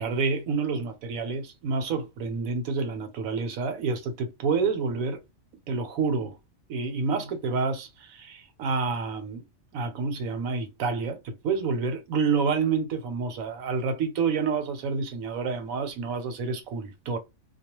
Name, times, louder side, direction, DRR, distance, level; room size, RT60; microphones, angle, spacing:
voice 1, 0.0-5.2 5.7-6.3 6.7-9.4 9.7-17.2, right 5 dB, 80° right, 1.1 m, -28 dB
2.3 x 2.2 x 2.9 m
omnidirectional pair, 1.4 m